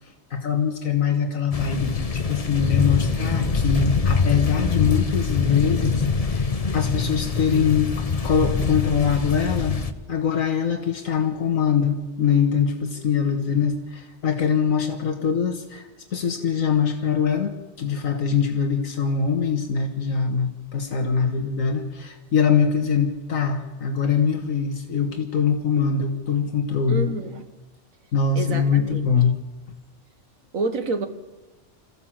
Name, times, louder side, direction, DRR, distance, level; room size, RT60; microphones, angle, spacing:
voice 1, 0.0-9.8 10.1-27.1 28.1-29.4, left 6 dB, 85° left, 1.9 m, -23 dB
sound 1, 1.5-9.9, left 4 dB, 30° left, 0.9 m, -24 dB
voice 2, 13.0-13.3 26.9-27.5 28.4-29.1 30.5-31.1, right 3 dB, 80° right, 1.9 m, -28 dB
27.0 x 15.0 x 7.5 m
omnidirectional pair, 1.4 m